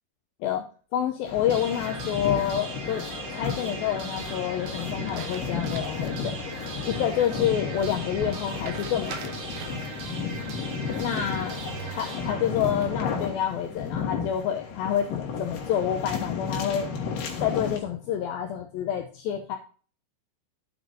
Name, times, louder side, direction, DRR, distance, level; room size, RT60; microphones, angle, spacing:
voice 1, 0.9-3.0 3.3-6.3 6.9-9.3 10.9-11.6 11.9-16.9 17.4-19.6, left 9 dB, 85° left, 5 dB, 2.1 m, -28 dB
sound 1, 1.3-17.8, left 6 dB, 60° left, 2.9 m, -33 dB
sound 2, 1.5-13.4, right 4 dB, 55° right, 2.2 m, -39 dB
sound 3, 1.7-2.6 4.8-6.1 6.5-6.6 8.6-9.9 10.9-12.1 12.5-13.1, right 7 dB, 80° right, 1.8 m, -45 dB
12.0 x 7.9 x 2.7 m, 0.40 s
omnidirectional pair, 5.0 m